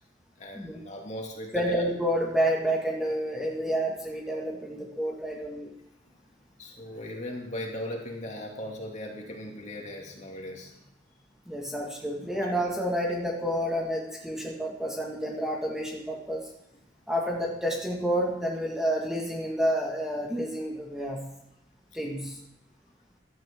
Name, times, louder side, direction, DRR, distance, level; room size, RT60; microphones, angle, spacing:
voice 1, 0.4-1.8 6.6-10.7, left 1 dB, 35° left, 0 dB, 2.5 m, -38 dB
voice 2, 1.5-5.7 11.5-16.5 17.1-21.3 21.9-22.4, equal, 5° right, -2 dB, 1.8 m, -29 dB
15.5 x 12.5 x 3.7 m, 0.85 s
head